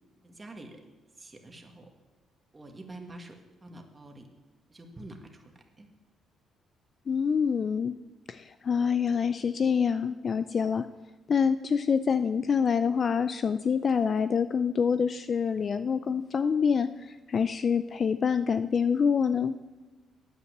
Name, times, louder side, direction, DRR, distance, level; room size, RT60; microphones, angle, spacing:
voice 1, 0.2-0.8 1.2-1.9 2.5-3.4 3.6-4.3 4.7-5.9, right 1 dB, 25° right, 3 dB, 1.8 m, -46 dB
voice 2, 7.1-8.0 8.3-10.9 11.3-19.5, left 6 dB, 45° left, 12 dB, 0.4 m, -26 dB
9.3 x 9.2 x 6.6 m, 1.2 s
cardioid pair, 90°, 0 cm